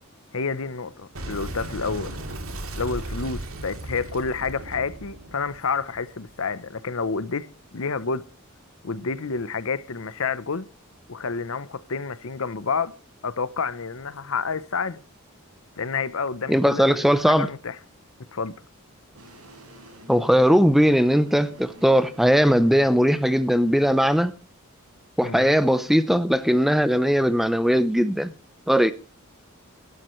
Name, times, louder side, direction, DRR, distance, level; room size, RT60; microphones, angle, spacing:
voice 1, 0.3-2.2 2.7-8.3 8.8-10.7 11.1-12.9 13.2-15.0 15.8-17.8 18.3-18.5 25.2-25.6, left 5 dB, 65° left, 0.8 m, -29 dB
Boom, 1.1-6.4, right 1 dB, 70° right, 2.6 m, -36 dB
voice 2, 16.5-17.5 20.1-24.3 25.2-28.3 28.7-28.9, equal, ahead, 0.6 m, -19 dB
sound 1, 19.1-24.2, equal, 85° right, 5.9 m, -48 dB
21.0 x 12.0 x 3.1 m
head